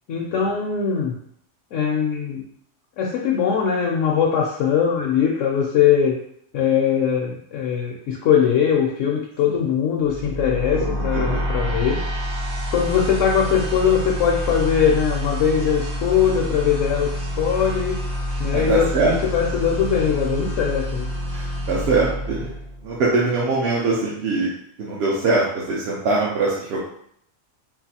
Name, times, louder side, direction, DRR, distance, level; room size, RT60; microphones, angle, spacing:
voice 1, 0.1-1.2 1.7-2.4 3.0-6.2 6.5-12.0 12.7-18.0 18.4-21.1, left 7 dB, 85° left, -1 dB, 0.9 m, -21 dB
sound 1, 10.0-23.1, equal, 45° right, 0.4 m, -28 dB
voice 2, 10.7-11.9 18.5-19.1 21.3-22.5 22.8-24.5 24.8-26.8, right 3 dB, 60° right, -5 dB, 0.8 m, -23 dB
3.8 x 2.4 x 2.8 m, 0.68 s
omnidirectional pair, 1.3 m